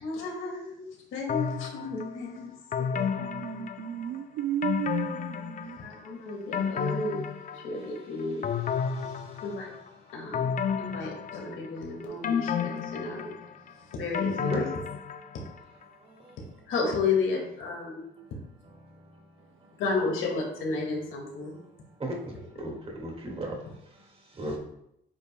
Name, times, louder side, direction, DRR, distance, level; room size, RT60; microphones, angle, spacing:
voice 1, 0.0-0.8 1.1-2.5 5.8-7.2 7.5-8.4 9.4-9.7 10.1-13.3 13.9-14.7 16.7-18.0 19.8-21.6, left 4 dB, 80° left, 0 dB, 2.1 m, -32 dB
sound 1, 1.3-2.1 2.7-4.2 4.6-5.9 6.3-8.0 8.4-9.8 10.3-11.8 12.2-15.5 15.8-15.9, left 7 dB, 40° left, 0.5 m, -31 dB
voice 2, 2.9-5.8, right 11 dB, 85° right, 11 dB, 0.5 m, -34 dB
voice 3, 9.0-9.3 14.3-14.6 16.2-16.4 18.8-18.9 22.0-22.2 22.6-23.5 23.9-24.1 24.3-24.6, right 1 dB, 30° right, 0 dB, 2.0 m, -36 dB
8.5 x 5.2 x 2.3 m, 0.77 s
cardioid pair, 90°, 20 cm